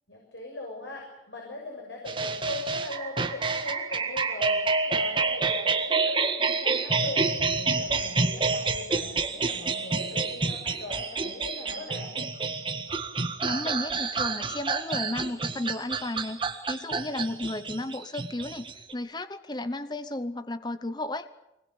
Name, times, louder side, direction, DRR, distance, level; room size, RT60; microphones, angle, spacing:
voice 1, 0.1-7.2 7.6-12.1, left 2 dB, 80° left, 0 dB, 6.8 m, -40 dB
sound 1, 2.1-18.9, right 4 dB, 25° right, 1.7 m, -28 dB
voice 2, 13.4-16.4 16.7-21.3, left 1 dB, 25° left, 12 dB, 0.9 m, -33 dB
25.0 x 20.5 x 8.7 m, 0.92 s
head